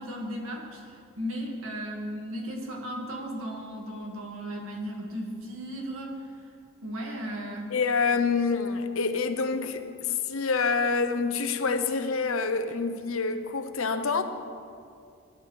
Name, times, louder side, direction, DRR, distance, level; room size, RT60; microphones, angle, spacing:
voice 1, 0.0-6.5 6.8-7.7, equal, 85° right, -1 dB, 2.0 m, -36 dB
voice 2, 7.7-14.2, left 4 dB, 75° left, 8 dB, 0.7 m, -27 dB
17.5 x 10.5 x 3.3 m, 2.3 s
head